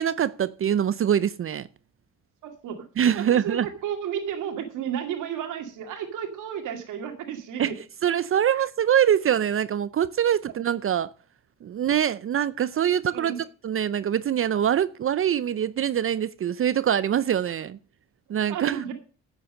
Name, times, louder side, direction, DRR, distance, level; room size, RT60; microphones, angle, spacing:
voice 1, 0.0-1.7 3.0-3.7 7.6-7.7 8.0-11.1 11.6-13.3 13.6-17.8 18.3-18.8, right 9 dB, 45° right, 0.6 m, -24 dB
voice 2, 2.4-2.8 3.1-3.6 3.8-7.8 8.5-8.6 13.1-13.4 18.5-18.9, right 8 dB, 85° right, 2.2 m, -32 dB
11.0 x 7.5 x 6.5 m
cardioid pair, 90°, 30 cm